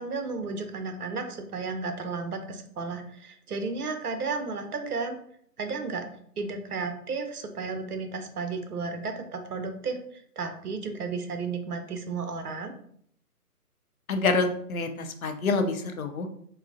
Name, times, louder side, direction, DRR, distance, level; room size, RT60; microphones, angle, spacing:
voice 1, 0.0-5.2 5.6-6.0 6.4-10.0 10.4-12.7, right 4 dB, 70° right, 6 dB, 0.7 m, -33 dB
voice 2, 14.1-16.3, left 3 dB, 65° left, 7 dB, 0.6 m, -27 dB
3.7 x 2.0 x 2.6 m, 0.64 s
figure-of-eight pair, 155°, 47 cm